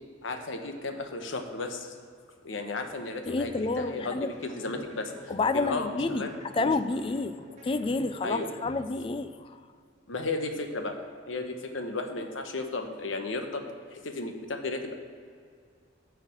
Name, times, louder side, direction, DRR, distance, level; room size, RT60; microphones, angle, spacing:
voice 1, 0.2-1.9 2.4-6.7 8.2-8.5 10.1-11.0 11.3-15.0, left 3 dB, 80° left, 5 dB, 1.0 m, -34 dB
voice 2, 3.3-4.3 5.3-7.4 7.6-9.6, left 3 dB, 30° left, 12 dB, 0.4 m, -29 dB
sound 1, 3.4-9.4, equal, 35° right, 1.6 m, -48 dB
9.3 x 4.9 x 7.5 m, 2.2 s
head